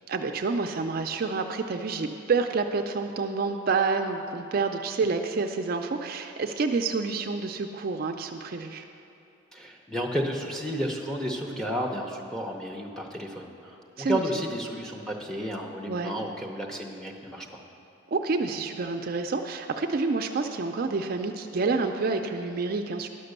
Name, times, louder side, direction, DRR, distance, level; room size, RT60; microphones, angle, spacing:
voice 1, 0.1-8.8 14.0-14.2 15.9-16.1 18.1-23.1, right 4 dB, 45° right, 5 dB, 0.4 m, -28 dB
voice 2, 9.5-17.6, equal, 5° left, 0 dB, 0.7 m, -32 dB
11.5 x 5.9 x 6.6 m, 2.7 s
head